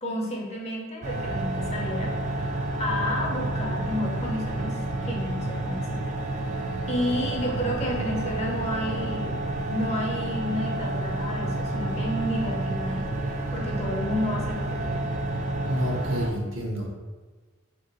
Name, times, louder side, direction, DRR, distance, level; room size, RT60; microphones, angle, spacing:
voice 1, 0.0-4.8 5.0-6.2 6.9-9.4 9.7-15.1, left 1 dB, 30° left, -1 dB, 0.6 m, -31 dB
sound 1, 1.0-16.3, right 2 dB, 35° right, 0.4 m, -29 dB
voice 2, 15.6-16.9, equal, 70° right, -1 dB, 0.8 m, -29 dB
3.4 x 2.6 x 3.9 m, 1.3 s
head